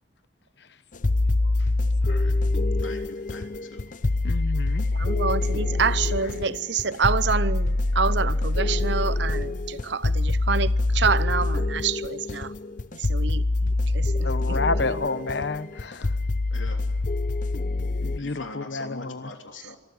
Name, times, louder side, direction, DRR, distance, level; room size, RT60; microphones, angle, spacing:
sound 1, 0.9-18.2, left 2 dB, 40° left, 0.7 m, -25 dB
voice 1, 2.0-2.3 2.8-3.4 3.7-3.8 6.2-6.3 11.5-11.6 15.0-15.1 16.5-16.8 18.2-19.8, left 3 dB, 90° left, 3.4 m, -41 dB
voice 2, 4.2-4.8 14.2-16.1 18.0-19.3, left 3 dB, 60° left, 1.0 m, -30 dB
voice 3, 4.9-12.5 12.9-15.3, right 5 dB, 65° right, 0.8 m, -28 dB
24.5 x 14.5 x 9.6 m
head